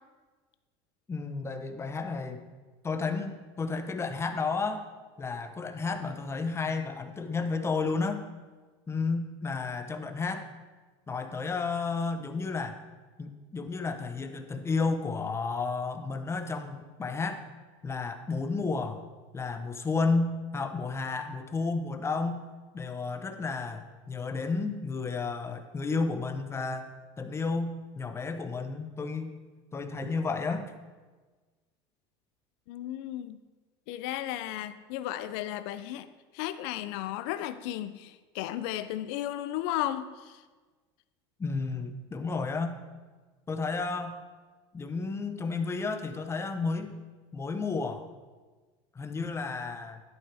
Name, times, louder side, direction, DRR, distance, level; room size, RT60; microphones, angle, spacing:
voice 1, 1.1-2.4 2.8-4.9 5.2-8.2 8.9-10.5 11.1-12.8 13.2-17.5 17.8-19.0 19.3-22.4 22.7-29.3 29.7-30.7 41.4-42.8 43.5-44.2 44.7-46.9 47.3-48.1 48.9-50.0, left 4 dB, 20° left, 7 dB, 0.9 m, -32 dB
voice 2, 32.7-33.4 33.9-36.1 36.3-40.4, left 13 dB, 70° left, 13 dB, 0.5 m, -34 dB
11.0 x 9.0 x 3.5 m, 1.3 s
supercardioid pair, 105°, 13 cm